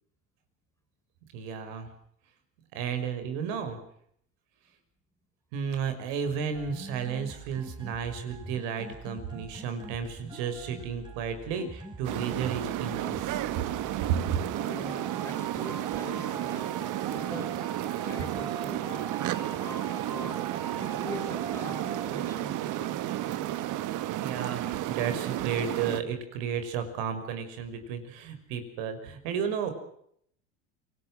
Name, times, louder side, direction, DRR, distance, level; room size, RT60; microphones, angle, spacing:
voice 1, 1.3-1.9 2.7-3.8 5.5-13.6 14.1-14.4 24.2-29.7, right 7 dB, 70° right, 9 dB, 5.8 m, -33 dB
sound 1, 6.5-22.6, right 3 dB, 10° right, 4.8 m, -43 dB
sound 2, 12.0-26.0, right 13 dB, 55° right, 1.8 m, -32 dB
voice 2, 14.6-17.6 18.0-19.2 19.6-20.4 20.8-23.4, left 1 dB, 10° left, 6 dB, 5.2 m, -44 dB
27.5 x 19.5 x 6.3 m, 0.68 s
supercardioid pair, 105°, 38 cm